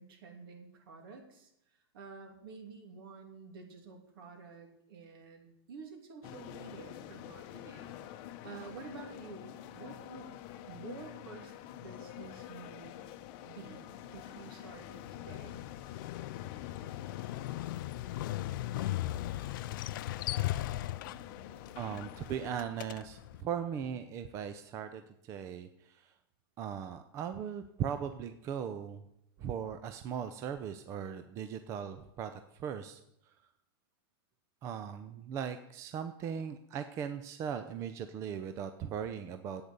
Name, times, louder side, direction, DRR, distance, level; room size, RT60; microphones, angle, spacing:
voice 1, 0.0-7.9 8.4-10.4 10.7-13.0 13.4-13.8 14.1-15.6, right 4 dB, 65° right, 3 dB, 2.9 m, -50 dB
sound 1, 6.2-22.6, left 11 dB, 35° left, 0.8 m, -47 dB
Motorcycle, 15.1-23.4, left 15 dB, 55° left, 0.4 m, -38 dB
voice 2, 21.8-26.1 26.6-29.0 29.4-33.0 34.6-39.7, right 8 dB, 25° right, 9 dB, 0.5 m, -39 dB
10.0 x 8.8 x 6.8 m, 0.79 s
supercardioid pair, 160°, 13 cm